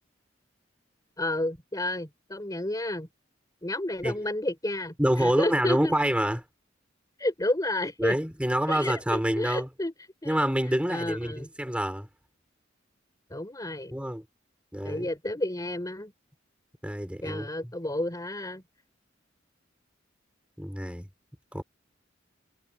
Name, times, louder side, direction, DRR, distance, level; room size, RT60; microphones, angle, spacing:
voice 1, 1.2-3.1 3.6-5.9 7.2-8.2 8.7-9.9 10.2-10.5 10.9-11.5 13.3-13.9 14.8-16.1 17.2-18.6, left 1 dB, 20° left, 3.8 m, -31 dB
voice 2, 5.0-6.4 8.0-9.7 10.3-12.1 13.9-14.2 14.7-15.1 16.8-17.5 20.6-21.0 21.5-21.6, equal, 5° right, 4.0 m, -27 dB
head